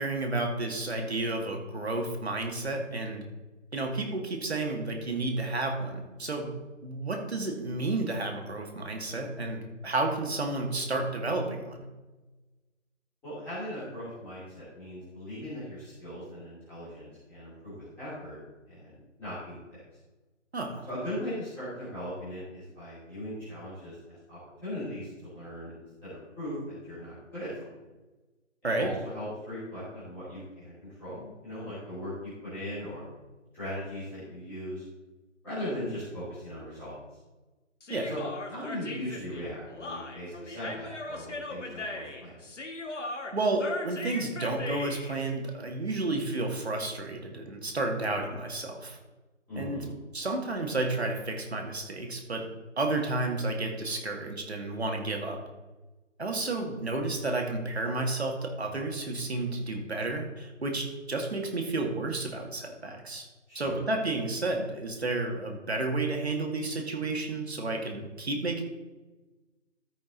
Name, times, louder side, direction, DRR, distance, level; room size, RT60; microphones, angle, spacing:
voice 1, 0.0-3.3 3.7-6.5 6.8-11.8 20.5-20.9 28.6-28.9 37.9-38.1 43.3-49.0 49.6-49.8 50.1-52.5 52.8-55.4 56.2-63.3 63.5-68.6, right 2 dB, 55° right, 2 dB, 1.9 m, -31 dB
voice 2, 13.2-18.4 18.7-19.8 20.9-27.7 28.6-33.0 33.5-34.8 35.4-37.0 38.0-38.2 38.5-42.4 49.5-49.9 63.5-63.8, equal, 5° left, -14 dB, 2.8 m, -39 dB
Human voice, 37.8-45.2, left 2 dB, 70° left, 1.7 m, -38 dB
14.0 x 5.2 x 3.9 m, 1.2 s
figure-of-eight pair, 165°, 38 cm